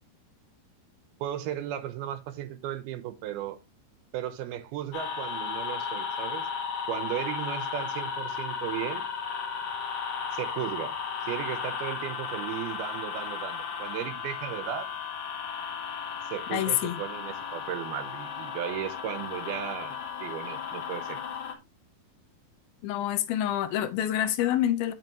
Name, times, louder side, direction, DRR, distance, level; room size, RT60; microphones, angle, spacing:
voice 1, 1.2-3.6 4.1-6.5 6.9-9.0 10.3-11.0 11.2-14.9 16.2-21.2, right 11 dB, 75° right, 2.9 m, -35 dB
sound 1, 4.9-21.6, left 6 dB, 60° left, 3.2 m, -35 dB
voice 2, 16.5-17.0 22.8-24.9, left 12 dB, 80° left, 2.4 m, -27 dB
15.0 x 5.1 x 3.1 m
omnidirectional pair, 4.6 m